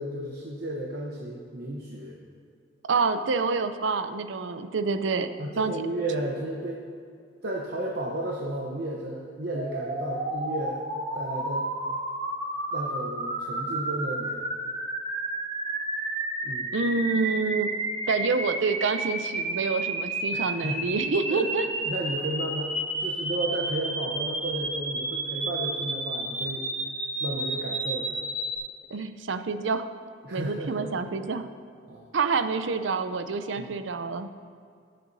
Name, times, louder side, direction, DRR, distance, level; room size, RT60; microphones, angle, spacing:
voice 1, 0.0-2.2 5.4-6.8 7.4-10.8 11.1-11.7 12.7-14.4 16.4-16.8 20.3-20.9 21.3-21.5 21.8-26.7 27.2-28.2 30.2-31.1 31.9-32.1 33.6-33.9, right 1 dB, 60° right, -2 dB, 0.9 m, -33 dB
voice 2, 2.9-5.3 5.6-5.7 16.7-17.7 18.1-21.6 28.9-29.9 30.3-31.5 32.1-34.3, right 4 dB, 90° right, 10 dB, 0.6 m, -27 dB
sound 1, 9.5-28.6, right 2 dB, 40° right, 2.1 m, -31 dB
18.0 x 7.7 x 2.7 m, 2.3 s
head